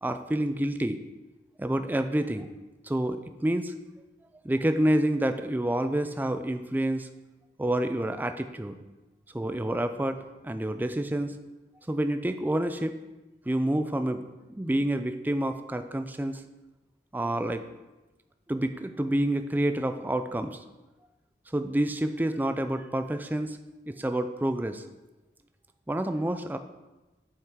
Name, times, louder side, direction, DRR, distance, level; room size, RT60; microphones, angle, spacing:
voice 1, 0.0-1.0 1.6-2.5 2.8-3.7 4.4-7.1 7.6-8.8 9.3-11.4 11.9-13.0 13.5-14.2 14.5-16.4 17.1-17.7 18.5-20.6 21.5-23.6 23.9-24.8 25.9-26.6, right 1 dB, 10° right, 8 dB, 0.4 m, -28 dB
7.6 x 5.7 x 4.8 m, 1.1 s
head